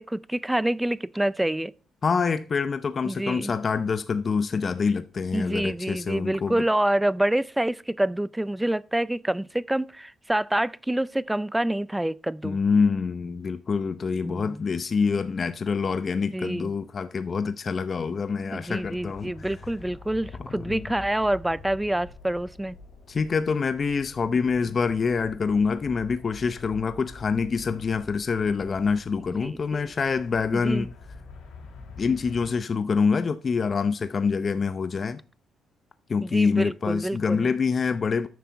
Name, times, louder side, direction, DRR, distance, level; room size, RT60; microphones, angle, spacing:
voice 1, 0.0-1.7 3.1-3.5 5.3-12.6 14.2-14.6 16.3-16.7 18.5-22.8 29.4-29.8 30.5-30.9 36.2-37.5, right 1 dB, 10° right, 0.4 m, -27 dB
voice 2, 2.0-6.6 12.4-19.3 20.4-20.9 23.1-30.9 32.0-35.2 36.1-38.3, left 5 dB, 40° left, 0.6 m, -26 dB
sound 1, 18.2-32.5, left 3 dB, 75° left, 3.3 m, -46 dB
9.4 x 6.7 x 4.0 m
cardioid pair, 90°, 0 cm